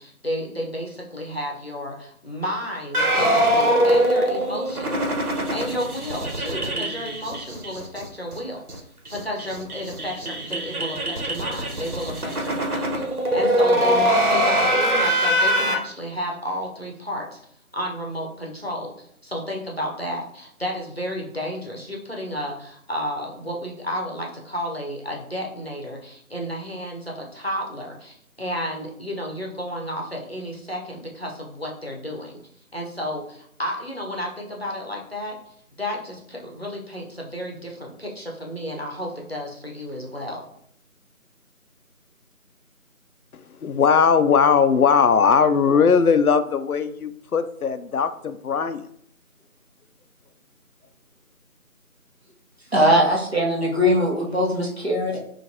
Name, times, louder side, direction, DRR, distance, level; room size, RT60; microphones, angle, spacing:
voice 1, 0.0-8.6 9.1-13.0 13.3-17.4 17.7-32.4 32.7-35.4 35.8-40.4, equal, 45° left, -1 dB, 0.8 m, -32 dB
sound 1, 2.9-8.0 8.3-8.4 8.7-8.8 9.1-15.8, equal, 80° right, 1.2 m, -22 dB
voice 2, 43.6-48.8, left 6 dB, 80° left, 11 dB, 0.5 m, -19 dB
voice 3, 52.7-55.2, equal, 45° right, -4 dB, 1.1 m, -20 dB
5.5 x 2.5 x 2.7 m, 0.68 s
figure-of-eight pair, 175°, 43 cm